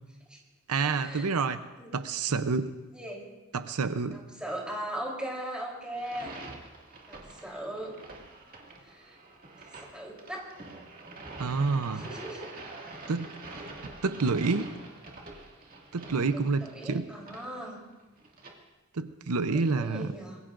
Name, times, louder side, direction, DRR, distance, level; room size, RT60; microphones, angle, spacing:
voice 1, 0.7-1.6 1.9-2.7 3.5-4.2 11.4-12.1 13.1-13.3 14.0-14.7 15.9-17.0 18.9-20.1, right 4 dB, 90° right, 10 dB, 0.7 m, -28 dB
voice 2, 4.1-6.4 7.1-8.0 8.9-9.2 9.9-10.5 11.9-12.5 16.6-17.8 19.5-20.4, right 1 dB, 5° right, -3 dB, 3.6 m, -38 dB
sound 1, 5.9-18.5, right 2 dB, 40° right, 2.1 m, -46 dB
25.5 x 21.0 x 2.6 m, 1.1 s
head